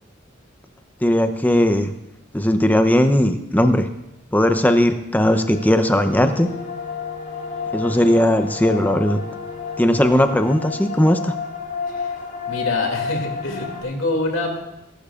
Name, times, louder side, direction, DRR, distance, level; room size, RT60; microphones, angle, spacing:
voice 1, 1.0-1.9 2.3-3.9 4.3-6.5 7.7-9.2 9.8-11.3, left 1 dB, 10° left, 8 dB, 0.7 m, -18 dB
sound 1, 5.2-13.8, left 6 dB, 45° left, 3.4 m, -31 dB
Wind instrument woodwind instrument, 5.6-11.3, left 5 dB, 60° left, 0.7 m, -38 dB
voice 2, 12.4-14.6, left 1 dB, 90° left, 2 dB, 2.5 m, -26 dB
21.0 x 12.0 x 2.5 m, 0.90 s
head